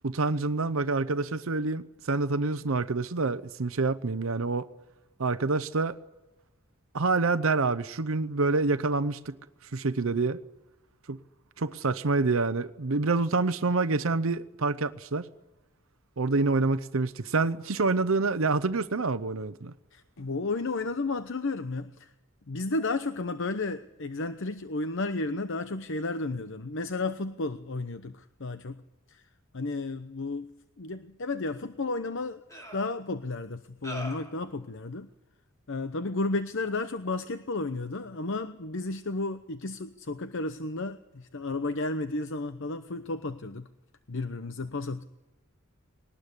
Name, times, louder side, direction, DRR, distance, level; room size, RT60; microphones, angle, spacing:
voice 1, 0.0-4.7 5.2-6.0 6.9-9.3 9.6-10.4 11.1-11.2 11.6-15.3 16.2-19.7, right 3 dB, 65° right, 0.8 m, -27 dB
voice 2, 19.9-22.1 22.5-28.8 29.1-29.2 29.5-32.4 32.7-35.1 35.7-43.7 44.1-45.0, left 3 dB, 60° left, 0.9 m, -33 dB
sound 1, 31.5-31.6 32.5-32.9 33.8-34.4, right 1 dB, 15° left, 3.6 m, -40 dB
21.5 x 19.0 x 9.8 m
head